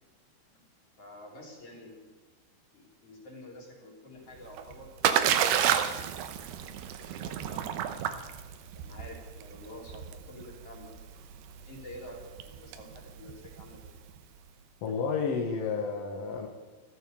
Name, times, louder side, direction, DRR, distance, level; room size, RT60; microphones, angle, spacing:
voice 1, 1.0-2.1 2.7-4.9 5.8-6.4 7.0-8.1 8.7-11.1 11.7-13.9, left 1 dB, 35° left, -2 dB, 4.1 m, -49 dB
Splash splatter, 4.3-14.2, right 9 dB, 80° right, 2.8 m, -31 dB
voice 2, 14.8-16.5, left 5 dB, 70° left, 2 dB, 1.5 m, -31 dB
14.5 x 14.0 x 5.3 m, 1.4 s
omnidirectional pair, 4.8 m